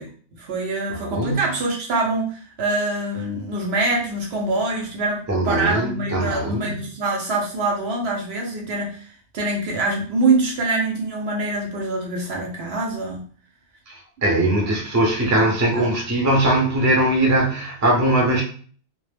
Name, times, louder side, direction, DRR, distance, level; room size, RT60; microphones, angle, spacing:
voice 1, 0.0-9.1 9.3-13.2 14.3-14.5 15.7-16.0, right 2 dB, 65° right, 0.8 m, -25 dB
voice 2, 0.9-1.4 5.3-6.8 13.9-18.4, right 1 dB, 25° right, 0.4 m, -20 dB
2.1 x 2.0 x 3.3 m
omnidirectional pair, 1.3 m